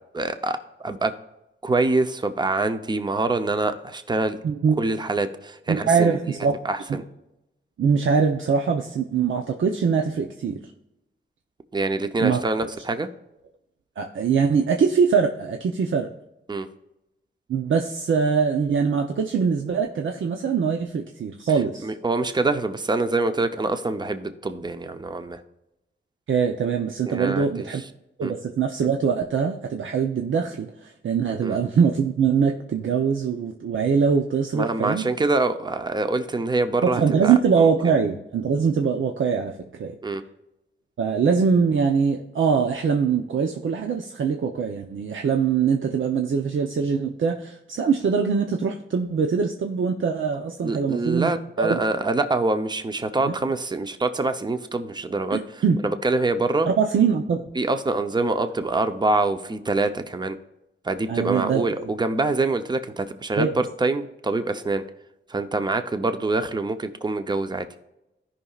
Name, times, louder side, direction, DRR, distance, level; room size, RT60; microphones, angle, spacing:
voice 1, 0.1-1.1 1.6-4.4 4.8-6.2 6.6-7.0 11.7-13.1 16.5-16.7 21.8-25.4 27.1-27.7 28.2-28.3 31.4-31.6 34.5-37.7 40.0-40.2 50.6-56.7 57.6-60.4 60.8-64.8 65.3-67.7, right 2 dB, 20° right, 9 dB, 0.7 m, -25 dB
voice 2, 4.4-4.8 5.7-6.6 6.9-7.0 7.8-10.6 12.2-12.4 14.0-16.1 17.5-21.9 26.3-27.8 28.2-35.1 36.8-39.9 41.0-51.3 51.6-51.8 53.2-53.3 55.3-55.8 56.7-57.5 61.1-61.6 63.4-63.5, right 6 dB, 80° right, 3 dB, 0.8 m, -22 dB
16.0 x 5.6 x 2.4 m, 0.91 s
wide cardioid pair, 125°, 20 cm